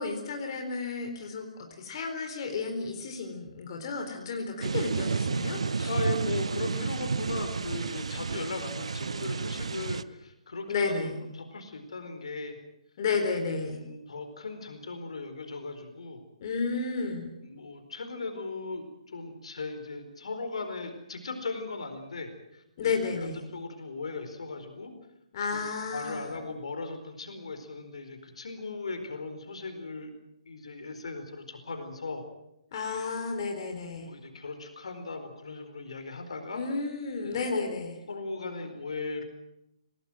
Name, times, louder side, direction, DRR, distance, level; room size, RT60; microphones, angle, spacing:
voice 1, 0.0-5.9 10.7-11.2 13.0-13.8 16.4-17.3 22.8-23.4 25.3-26.3 32.7-34.1 36.5-37.9, left 4 dB, 40° left, 3 dB, 4.0 m, -32 dB
sound 1, 4.6-10.0, right 5 dB, 65° right, 0.8 m, -31 dB
voice 2, 5.9-11.1 11.3-12.6 13.8-16.2 17.4-22.9 23.2-24.9 25.5-25.6 25.9-30.1 30.5-32.2 34.0-36.6 37.2-37.7 38.1-39.2, left 3 dB, 60° left, 7 dB, 4.5 m, -38 dB
27.0 x 19.0 x 7.7 m, 0.85 s
figure-of-eight pair, 135°, 4 cm